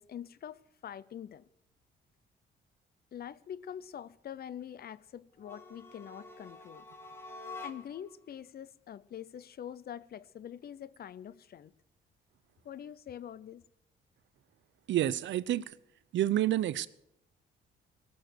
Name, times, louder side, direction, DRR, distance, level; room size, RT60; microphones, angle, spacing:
voice 1, 0.0-1.4 3.1-6.9 7.6-11.7 12.6-13.6, left 9 dB, 50° left, 0.6 m, -45 dB
sound 1, 5.4-8.1, left 3 dB, 10° left, 1.9 m, -47 dB
voice 2, 14.9-15.7 16.1-16.9, right 13 dB, 70° right, 0.6 m, -29 dB
18.0 x 6.9 x 7.8 m
cardioid pair, 90°, 20 cm